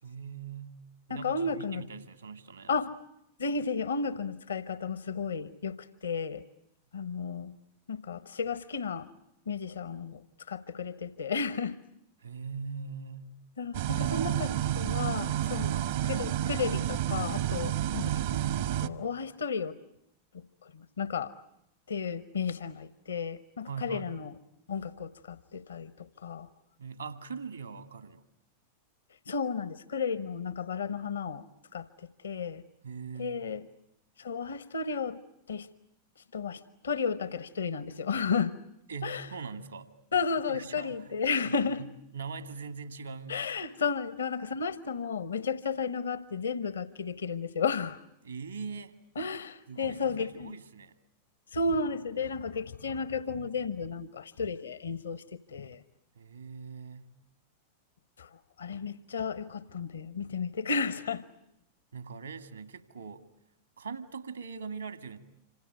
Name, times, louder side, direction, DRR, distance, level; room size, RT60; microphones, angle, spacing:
voice 1, 0.0-0.8 1.1-2.7 12.2-13.4 13.8-14.3 15.7-15.9 23.6-24.1 26.8-28.2 32.8-33.4 38.9-39.9 40.5-41.1 41.5-43.4 48.2-49.0 49.7-51.0 56.2-57.1 61.9-63.3 63.8-65.2, right 5 dB, 80° right, 10 dB, 2.0 m, -41 dB
voice 2, 1.1-1.8 2.7-2.9 3.4-6.4 6.9-7.5 7.9-9.1 9.5-11.8 13.6-15.8 16.1-18.4 18.8-19.8 20.7-21.3 21.9-24.3 24.7-26.5 29.3-31.4 31.7-32.6 33.2-33.6 34.2-35.2 35.5-35.7 36.3-38.5 39.0-39.3 40.1-41.8 43.3-48.0 49.2-50.5 51.5-55.8 58.2-58.3 58.6-61.2, left 5 dB, 70° left, 16 dB, 1.0 m, -33 dB
sound 1, 13.7-18.9, right 12 dB, 55° right, 1.0 m, -30 dB
27.0 x 26.5 x 8.0 m, 0.79 s
figure-of-eight pair, 90°, 0 cm